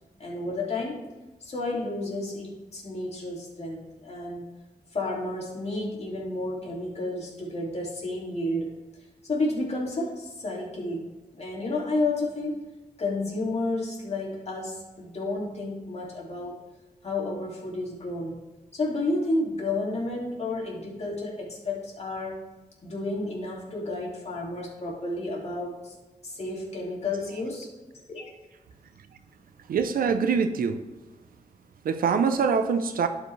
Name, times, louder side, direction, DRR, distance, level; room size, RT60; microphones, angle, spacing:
voice 1, 0.2-1.0 1.4-4.4 4.9-8.7 9.3-11.1 11.3-12.5 13.0-16.6 17.0-18.3 18.7-22.5 22.8-25.9 26.2-27.7 28.1-28.3, left 2 dB, 45° left, -3 dB, 2.4 m, -31 dB
voice 2, 29.7-30.8 31.8-33.1, right 6 dB, 85° right, 9 dB, 0.6 m, -24 dB
11.0 x 5.0 x 3.2 m, 1.2 s
cardioid pair, 75°, 14 cm